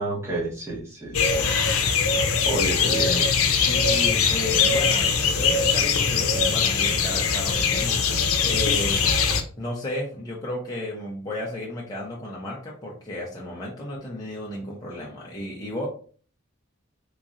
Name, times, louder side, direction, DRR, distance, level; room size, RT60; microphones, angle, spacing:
voice 1, 0.0-1.6 2.4-3.3, right 2 dB, 15° right, -6 dB, 1.2 m, -30 dB
sound 1, 1.1-9.4, left 5 dB, 85° left, 0.6 m, -22 dB
voice 2, 3.7-9.0 9.6-15.9, left 1 dB, 20° left, -4 dB, 0.6 m, -33 dB
3.6 x 3.0 x 2.5 m, 0.42 s
head